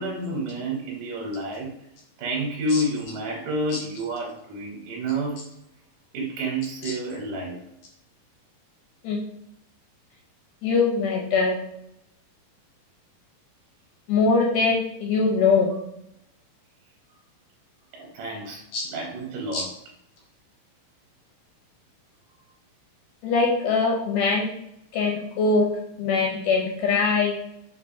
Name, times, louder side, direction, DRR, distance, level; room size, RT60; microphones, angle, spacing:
voice 1, 0.0-1.7 2.2-5.4 6.1-7.6 17.9-18.6 18.9-19.7, right 1 dB, 75° right, -3 dB, 2.2 m, -29 dB
voice 2, 10.6-11.6 14.1-15.7 18.7-18.9 19.5-19.6 23.2-24.5 24.9-25.7 26.0-27.4, left 4 dB, 80° left, -2 dB, 1.9 m, -22 dB
5.6 x 2.1 x 2.5 m, 0.79 s
omnidirectional pair, 4.1 m